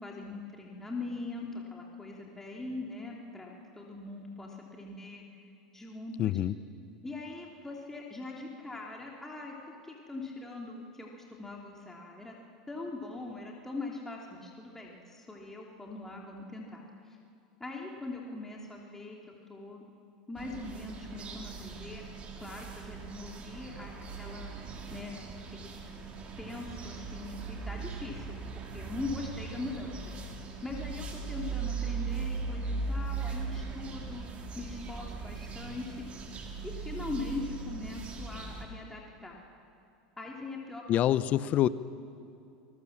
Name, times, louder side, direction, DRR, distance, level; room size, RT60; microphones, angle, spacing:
voice 1, 0.0-5.2 5.7-6.3 7.0-9.5 9.8-12.3 12.7-17.2 17.6-19.8 20.3-22.0 22.4-24.5 24.9-25.2 25.5-25.8 26.4-30.0 30.6-34.2 34.6-36.0 36.6-39.4 40.2-41.0, left 3 dB, 10° left, -1 dB, 2.9 m, -41 dB
voice 2, 6.2-6.5 40.9-41.7, left 12 dB, 45° left, 16 dB, 0.9 m, -26 dB
sound 1, 20.4-38.6, right 4 dB, 35° right, 3.8 m, -39 dB
26.0 x 21.0 x 7.3 m, 2.5 s
hypercardioid pair, 100°, 4 cm